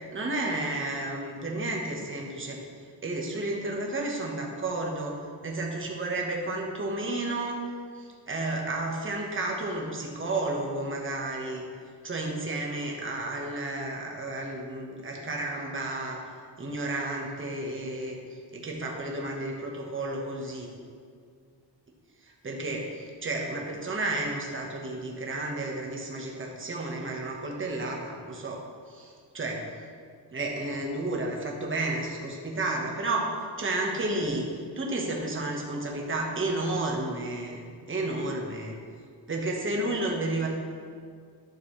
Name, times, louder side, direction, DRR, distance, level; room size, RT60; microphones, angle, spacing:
voice 1, 0.0-2.6 3.0-5.2 5.4-7.6 7.9-11.6 12.0-16.2 16.6-18.2 18.5-20.7 22.2-28.6 28.9-29.6 30.3-33.3 33.6-34.4 34.8-38.8 39.3-40.5, right 2 dB, 25° right, -1 dB, 1.3 m, -32 dB
12.0 x 6.6 x 3.2 m, 2.1 s
wide cardioid pair, 130°, 45 cm